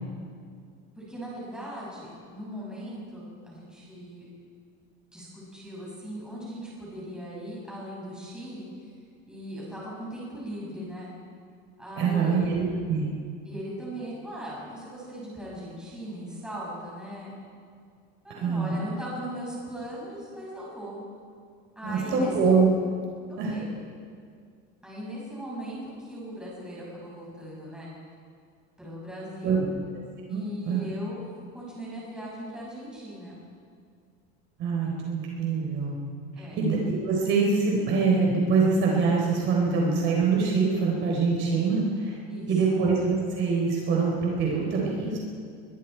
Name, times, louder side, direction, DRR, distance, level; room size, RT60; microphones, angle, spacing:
voice 1, 0.9-4.3 5.1-8.7 9.3-11.1 11.8-12.4 13.4-17.4 18.2-21.0 21.7-22.3 23.5-23.7 24.8-27.9 28.8-29.7 30.3-31.2 31.5-33.4 34.6-34.8 36.4-36.6 42.2-42.8, equal, 5° right, -6 dB, 6.9 m, -39 dB
voice 2, 12.0-13.1 18.3-18.7 21.8-22.7 23.4-23.6 29.4-29.7 30.3-30.8 34.6-36.0 36.5-42.2 42.5-45.2, right 4 dB, 40° right, -2 dB, 4.1 m, -24 dB
24.5 x 22.5 x 4.7 m, 2.3 s
cardioid pair, 170°, 29 cm